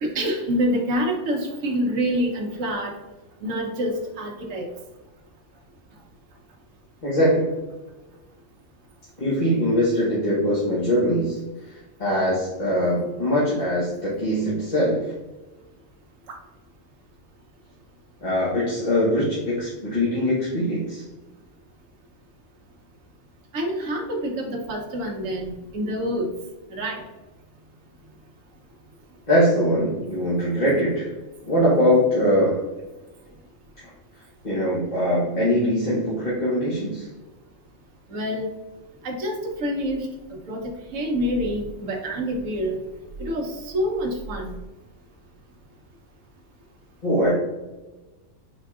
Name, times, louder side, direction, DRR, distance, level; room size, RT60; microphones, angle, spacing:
voice 1, 0.0-2.9 3.4-4.7 16.3-16.4 23.5-26.3 26.7-27.0 38.1-38.5 39.0-40.1 40.5-42.8 43.2-44.6, equal, 70° right, 0 dB, 1.1 m, -27 dB
voice 2, 7.0-7.5 9.2-15.1 18.2-21.0 29.3-31.1 31.4-32.6 33.8-33.9 34.4-37.1 47.0-47.3, equal, 35° left, -8 dB, 1.1 m, -22 dB
5.0 x 3.6 x 2.3 m, 1.1 s
omnidirectional pair, 1.4 m